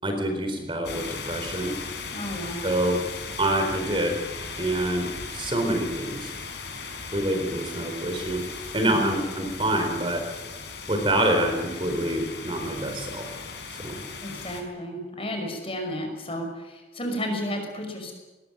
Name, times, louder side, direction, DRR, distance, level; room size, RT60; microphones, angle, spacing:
voice 1, 0.0-1.7 2.6-3.0 3.4-4.2 4.6-6.3 7.1-8.4 8.7-10.2 10.9-13.3 13.8-14.0, right 1 dB, 30° right, 4 dB, 4.1 m, -26 dB
sound 1, 0.8-14.6, left 4 dB, 65° left, 5.1 m, -37 dB
voice 2, 2.1-2.7 8.8-9.1 14.2-18.1, equal, 30° left, 3 dB, 5.8 m, -32 dB
22.0 x 20.5 x 8.9 m, 1.1 s
head